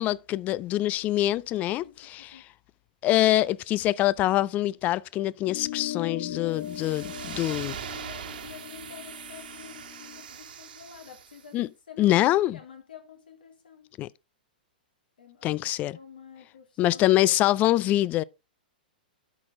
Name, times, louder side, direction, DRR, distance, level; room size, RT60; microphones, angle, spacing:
voice 1, 0.0-2.3 3.0-7.7 11.5-11.7 12.0-12.6 14.0-14.1 15.4-16.0 16.8-18.2, left 15 dB, 30° left, 0.4 m, -24 dB
voice 2, 1.8-2.4 7.0-11.6 11.9-12.2 12.5-13.9 15.2-17.8, left 8 dB, 75° left, 2.8 m, -49 dB
sound 1, 5.4-10.2, left 12 dB, 55° left, 1.6 m, -39 dB
sound 2, 6.5-11.5, right 8 dB, 70° right, 1.7 m, -41 dB
11.0 x 6.1 x 3.7 m
hypercardioid pair, 115°, 5 cm